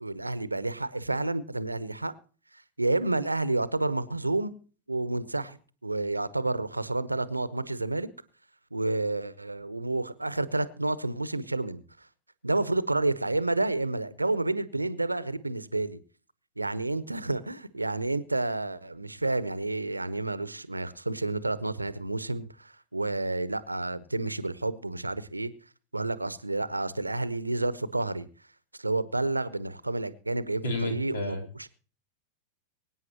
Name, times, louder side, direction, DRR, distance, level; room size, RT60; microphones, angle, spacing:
voice 1, 0.0-2.1 2.8-4.5 4.9-5.6 5.8-8.1 8.7-11.8 12.4-16.0 16.6-25.5 25.9-28.3 28.8-31.7, right 2 dB, 85° right, 16 dB, 0.9 m, -30 dB
voice 2, 30.6-31.4, left 2 dB, 65° left, 3 dB, 3.6 m, -31 dB
24.0 x 9.4 x 2.9 m, 0.39 s
figure-of-eight pair, 90°, 0 cm